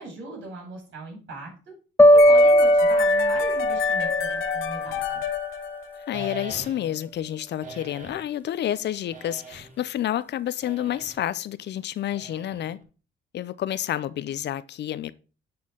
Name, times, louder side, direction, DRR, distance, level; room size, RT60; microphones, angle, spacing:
voice 1, 0.0-1.5 2.1-5.2, right 2 dB, 70° right, 4.7 m, -39 dB
sound 1, 2.0-5.1, equal, 10° left, 0.5 m, -18 dB
sound 2, 2.2-6.3, left 8 dB, 85° left, 0.9 m, -29 dB
voice 2, 6.1-12.8 13.3-15.2, left 11 dB, 60° left, 0.5 m, -29 dB
sound 3, 6.1-7.0 7.6-8.3 9.1-9.9 10.6-11.2 12.1-12.8, right 1 dB, 40° right, 1.7 m, -41 dB
9.5 x 4.4 x 3.7 m
cardioid pair, 90°, 20 cm